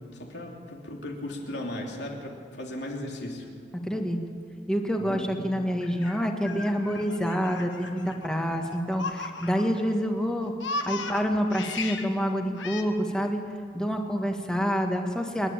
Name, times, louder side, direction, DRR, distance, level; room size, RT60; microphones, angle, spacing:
voice 1, 0.0-3.5 5.0-5.4, left 1 dB, 70° left, 0 dB, 3.2 m, -37 dB
voice 2, 3.8-4.2 4.7-10.5 10.8-13.4 13.7-15.5, equal, 5° left, 2 dB, 1.6 m, -27 dB
Laughter, 5.8-9.9 10.2-12.1 12.6-12.8, left 3 dB, 90° left, 1.5 m, -36 dB
27.5 x 11.0 x 8.9 m, 2.2 s
head